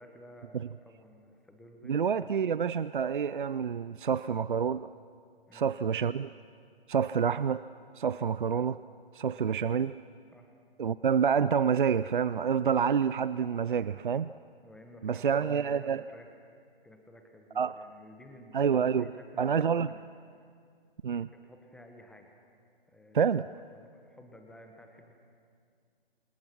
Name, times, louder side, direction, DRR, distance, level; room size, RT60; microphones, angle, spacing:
voice 1, 0.0-2.0 5.5-5.7 10.3-10.6 13.6-13.9 14.6-16.4 16.8-20.1 21.1-22.3 22.9-25.2, left 1 dB, ahead, 4 dB, 1.2 m, -54 dB
voice 2, 1.9-4.9 5.5-6.3 6.9-7.6 8.0-8.8 9.1-10.0 10.8-14.3 15.0-16.0 17.6-17.7 18.5-19.1 19.4-19.9 21.0-21.3 23.1-23.5, right 7 dB, 55° right, 16 dB, 0.5 m, -28 dB
29.5 x 26.5 x 6.0 m, 2.2 s
figure-of-eight pair, 135°, 30 cm